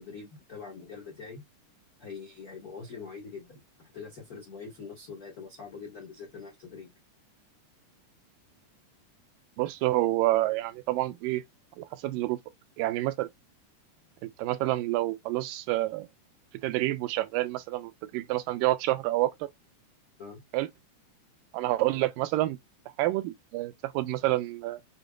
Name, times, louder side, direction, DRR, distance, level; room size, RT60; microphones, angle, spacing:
voice 1, 0.0-1.4 2.0-6.9 20.2-20.4, left 5 dB, 75° left, 0.8 m, -44 dB
voice 2, 9.6-11.4 11.8-12.4 12.8-13.3 14.2-16.1 16.6-19.5 20.5-20.7 21.5-22.6 23.0-24.8, right 17 dB, 85° right, 2.2 m, -28 dB
6.9 x 2.4 x 2.2 m
omnidirectional pair, 3.9 m